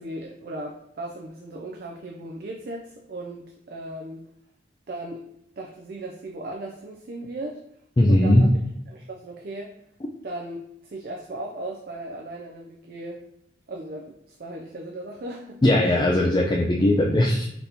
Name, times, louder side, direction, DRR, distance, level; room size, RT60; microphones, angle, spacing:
voice 1, 0.0-4.3 4.9-5.2 5.6-7.6 8.1-8.5 8.9-9.8 10.2-13.2 13.7-16.1, right 1 dB, 55° right, 0 dB, 0.4 m, -37 dB
voice 2, 8.0-8.5 15.6-17.5, left 1 dB, 25° left, -1 dB, 0.3 m, -19 dB
4.0 x 2.9 x 3.4 m, 0.77 s
head